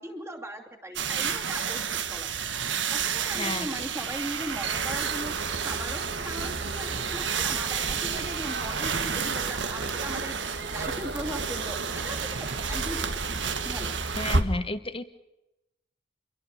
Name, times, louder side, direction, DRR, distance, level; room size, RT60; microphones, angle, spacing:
voice 1, 0.0-2.3 2.9-13.2 13.6-13.9, right 1 dB, 15° right, 4 dB, 2.7 m, -39 dB
sound 1, 1.0-14.4, right 7 dB, 85° right, 1.6 m, -31 dB
voice 2, 3.4-3.7 14.1-15.0, left 2 dB, 30° left, 10 dB, 1.4 m, -31 dB
sound 2, 4.6-14.4, right 2 dB, 70° right, 1.9 m, -34 dB
29.0 x 23.5 x 5.1 m, 0.93 s
head